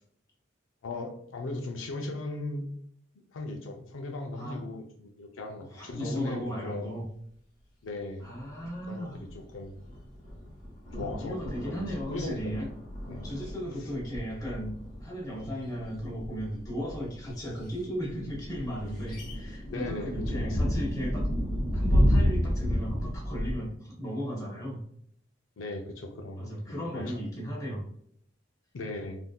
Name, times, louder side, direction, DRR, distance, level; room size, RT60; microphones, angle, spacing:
voice 1, 0.8-2.7 3.3-6.9 7.8-8.2 8.9-9.3 9.5-9.8 10.9-11.4 11.7-12.6 13.1-13.3 19.7-20.6 25.6-26.5 26.9-27.2 28.7-29.2, left 2 dB, 90° left, 3 dB, 0.5 m, -37 dB
voice 2, 4.3-4.7 5.6-7.0 8.2-9.2 11.2-12.7 13.2-21.3 21.7-24.8 26.3-27.9, equal, 20° left, -4 dB, 1.1 m, -36 dB
sound 1, 8.5-8.7 9.2-9.3 9.8-23.5, equal, 40° left, 1.2 m, -31 dB
3.5 x 2.6 x 2.3 m, 0.65 s
head